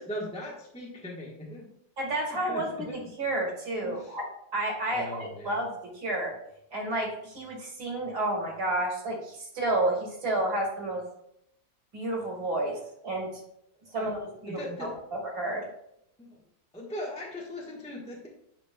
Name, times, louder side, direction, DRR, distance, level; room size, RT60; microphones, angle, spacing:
voice 1, 0.0-1.7 2.5-3.0 3.8-4.2 4.9-5.5 13.9-14.1 14.5-15.0 16.2-16.4 16.7-18.3, left 1 dB, 5° left, -3 dB, 0.9 m, -39 dB
voice 2, 2.0-4.3 4.5-6.3 6.7-11.0 11.9-13.3 13.9-15.7, right 1 dB, 60° right, -3 dB, 2.6 m, -31 dB
9.9 x 5.0 x 2.3 m, 0.76 s
omnidirectional pair, 2.0 m